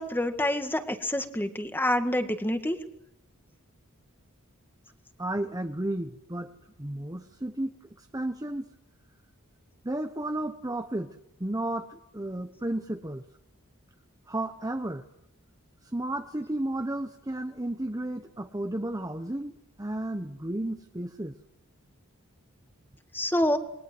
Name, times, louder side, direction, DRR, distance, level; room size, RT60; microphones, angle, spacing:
voice 1, 0.0-2.8 23.1-23.6, left 1 dB, 10° left, 7 dB, 2.0 m, -27 dB
voice 2, 5.2-6.5 6.8-8.7 9.8-11.1 11.4-13.2 14.3-15.0 15.9-19.5 19.8-21.3, right 1 dB, 15° right, 6 dB, 1.0 m, -33 dB
28.5 x 22.5 x 7.8 m, 0.81 s
head